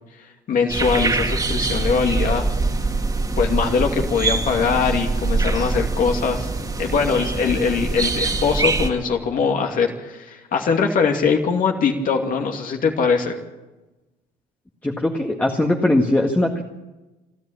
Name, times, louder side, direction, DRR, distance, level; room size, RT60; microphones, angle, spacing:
voice 1, 0.5-2.5 3.4-6.5 6.8-13.4, left 5 dB, 55° left, 3 dB, 2.5 m, -21 dB
sound 1, 0.7-8.9, right 3 dB, 20° right, 2.3 m, -23 dB
voice 2, 14.8-16.6, left 1 dB, 10° left, 2 dB, 1.8 m, -20 dB
28.0 x 11.0 x 8.8 m, 1.1 s
cardioid pair, 110°, 17 cm